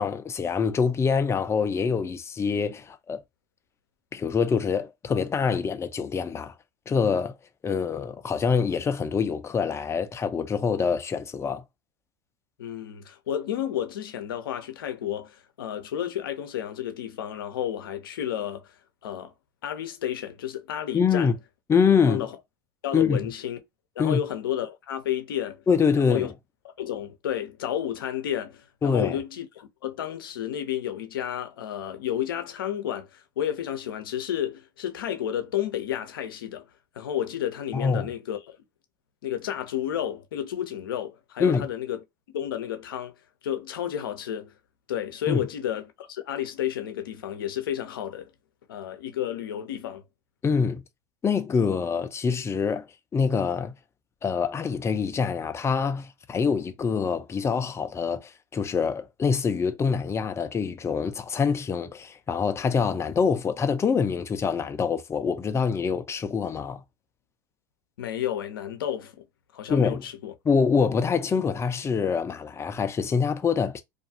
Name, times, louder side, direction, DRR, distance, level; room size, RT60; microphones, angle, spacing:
voice 1, 0.0-3.2 4.1-6.5 6.9-7.4 7.6-11.6 20.9-21.3 21.7-22.2 22.9-23.2 24.0-24.2 25.7-26.3 28.8-29.2 37.7-38.1 41.4-41.7 45.3-45.4 50.4-50.8 51.2-52.8 53.1-53.7 54.2-66.8 69.7-70.0 70.4-73.8, left 6 dB, 25° left, 0.5 m, -25 dB
voice 2, 12.6-18.7 19.0-19.3 19.6-21.3 22.1-22.3 22.8-23.6 24.0-25.6 26.1-26.3 26.8-36.7 36.9-38.6 39.2-42.0 42.3-43.1 43.4-44.5 44.9-48.3 48.7-50.0 68.0-69.2 69.5-70.3, left 10 dB, 90° left, 0.6 m, -31 dB
2.5 x 2.3 x 2.7 m
hypercardioid pair, 90°, 11 cm